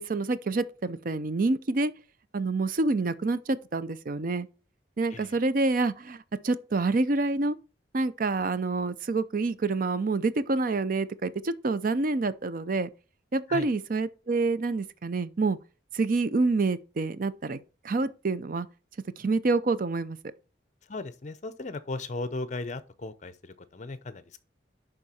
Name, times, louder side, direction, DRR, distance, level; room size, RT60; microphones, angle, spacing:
voice 1, 0.0-1.9 2.3-4.5 5.0-7.6 7.9-12.9 13.3-15.6 15.9-17.6 17.8-18.7 19.2-20.2, right 3 dB, 50° right, 0.5 m, -27 dB
voice 2, 20.9-24.4, left 2 dB, 40° left, 0.7 m, -37 dB
11.0 x 3.8 x 4.3 m
head